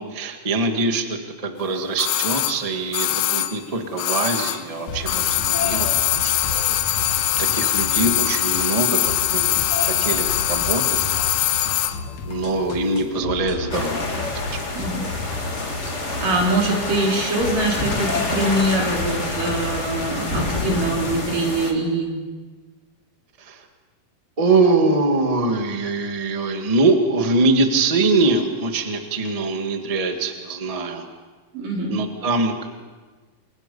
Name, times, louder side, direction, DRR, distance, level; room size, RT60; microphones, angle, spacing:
voice 1, 0.0-6.3 7.4-11.1 12.2-14.0 14.4-14.6 23.4-23.6 24.4-31.1 31.9-32.7, right 3 dB, 25° right, 4 dB, 0.7 m, -23 dB
sound 1, 2.0-4.7 5.0-12.0 12.3-12.4, left 13 dB, 85° left, 2.7 m, -22 dB
sound 2, 4.9-21.6, left 3 dB, 60° left, 3.4 m, -32 dB
sound 3, 13.7-21.7, left 2 dB, 25° left, 2.0 m, -28 dB
voice 2, 15.9-22.2 31.5-32.0, right 2 dB, 70° right, -1 dB, 5.2 m, -23 dB
29.0 x 22.5 x 5.4 m, 1.4 s
omnidirectional pair, 4.0 m